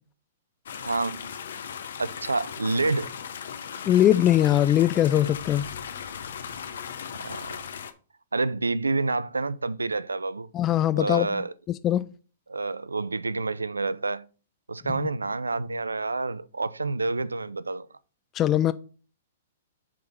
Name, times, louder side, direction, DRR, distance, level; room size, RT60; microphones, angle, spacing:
sound 1, 0.7-7.9, left 7 dB, 65° left, 0.8 m, -37 dB
voice 1, 0.8-1.2 2.0-3.1 7.2-7.6 8.3-10.5 10.9-11.5 12.5-14.3 14.7-17.9, right 3 dB, 90° right, 0.4 m, -28 dB
voice 2, 3.9-5.7 10.5-11.3 11.8-12.1 18.4-18.7, left 12 dB, 25° left, 0.3 m, -21 dB
7.5 x 3.8 x 5.6 m
figure-of-eight pair, 115°, 0 cm